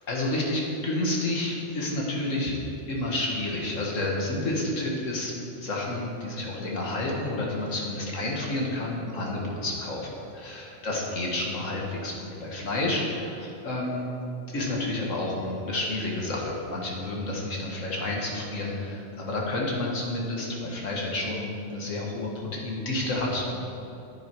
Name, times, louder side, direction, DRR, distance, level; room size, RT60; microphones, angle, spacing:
voice 1, 0.1-2.5 2.9-12.1 12.4-14.1 14.5-23.6, left 2 dB, 90° left, -2 dB, 2.1 m, -30 dB
10.0 x 9.5 x 4.7 m, 2.9 s
omnidirectional pair, 1.3 m